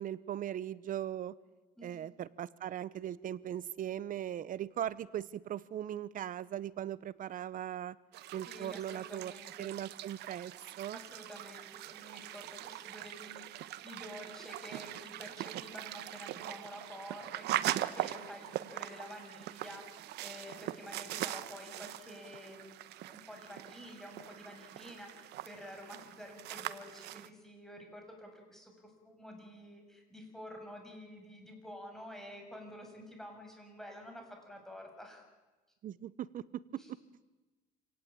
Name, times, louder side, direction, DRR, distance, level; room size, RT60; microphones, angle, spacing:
voice 1, 0.0-1.3 1.8-8.0 8.3-9.3 9.6-10.5 10.8-11.0 35.8-36.6 36.9-37.0, right 11 dB, 55° right, 18 dB, 1.0 m, -39 dB
sound 1, 8.1-27.3, right 14 dB, 80° right, 1.1 m, -41 dB
voice 2, 8.5-9.7 10.9-22.8 23.0-35.2 36.7-36.9, equal, ahead, 3 dB, 7.2 m, -49 dB
27.5 x 18.0 x 8.8 m, 1.2 s
cardioid pair, 110°, 17 cm